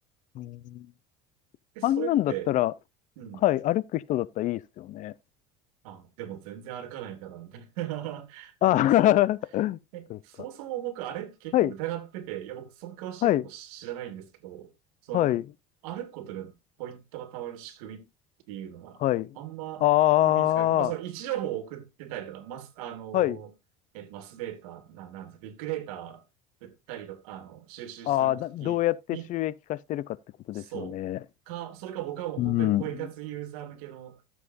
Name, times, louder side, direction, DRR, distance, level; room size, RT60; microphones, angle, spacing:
voice 1, 0.3-0.9 1.8-2.7 3.4-5.1 8.6-9.8 10.1-10.2 11.5-11.7 13.2-13.4 15.1-15.4 19.0-19.4 19.8-20.9 23.1-23.4 28.1-30.2 30.5-31.2 32.4-32.8, left 14 dB, 45° left, 0.6 m, -24 dB
voice 2, 1.7-2.5 3.2-3.4 5.8-9.2 9.9-14.7 15.0-15.4 15.8-18.1 18.5-19.0 19.4-19.8 20.2-23.5 23.9-26.2 26.6-28.8 29.1-29.3 30.5-31.0 31.5-34.2, right 12 dB, 90° right, 2.3 m, -38 dB
13.5 x 7.4 x 2.6 m
cardioid pair, 140°, 18 cm